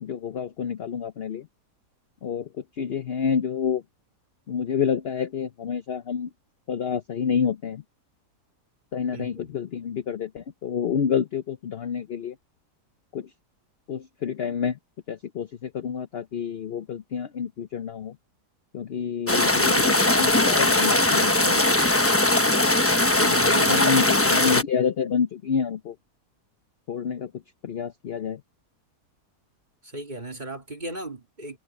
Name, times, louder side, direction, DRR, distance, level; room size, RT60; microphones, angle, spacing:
voice 1, 0.0-1.5 2.2-2.5 2.8-3.8 4.5-6.3 6.7-7.8 8.9-12.3 13.1-13.3 13.9-14.8 15.1-18.1 18.7-21.7 23.0-23.1 23.7-25.9 26.9-27.3 27.6-28.4, left 7 dB, 55° left, 0.7 m, -28 dB
voice 2, 9.1-9.6 23.2-24.0 24.5-24.6 29.8-31.6, right 2 dB, 25° right, 2.6 m, -35 dB
sound 1, 19.3-24.6, left 2 dB, 10° left, 0.7 m, -20 dB
omnidirectional pair, 1.7 m